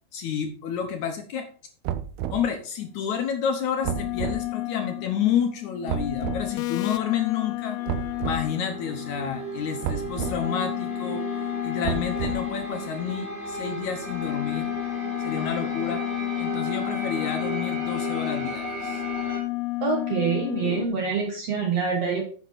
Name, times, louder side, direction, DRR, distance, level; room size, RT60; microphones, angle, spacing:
voice 1, 0.1-1.5 2.3-7.8 8.2-14.7 15.2-16.0 16.4-19.0, left 8 dB, 70° left, 5 dB, 1.9 m, -30 dB
sound 1, 1.8-2.5 3.8-4.4 5.9-6.5 7.9-8.4 9.8-10.4 11.8-12.6, right 10 dB, 85° right, 2.6 m, -30 dB
sound 2, 2.8-2.9 3.7-13.3 13.9-20.9, left 20 dB, 90° left, 2.5 m, -32 dB
sound 3, 7.8-19.4, right 2 dB, 35° right, 4.1 m, -35 dB
voice 2, 19.8-22.2, right 5 dB, 60° right, 2 dB, 1.9 m, -26 dB
9.9 x 7.4 x 4.1 m, 0.42 s
omnidirectional pair, 4.4 m